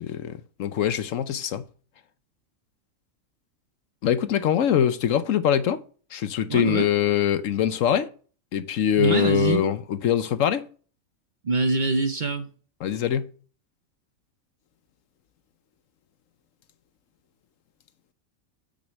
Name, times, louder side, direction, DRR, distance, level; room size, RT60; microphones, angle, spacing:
voice 1, 0.0-1.6 4.0-5.8 6.1-8.1 8.5-10.7 12.8-13.3, left 9 dB, 70° left, 1.1 m, -23 dB
voice 2, 6.5-6.9 9.0-9.6 11.4-12.5, right 4 dB, 45° right, 0.8 m, -24 dB
8.7 x 6.4 x 6.2 m
omnidirectional pair, 1.4 m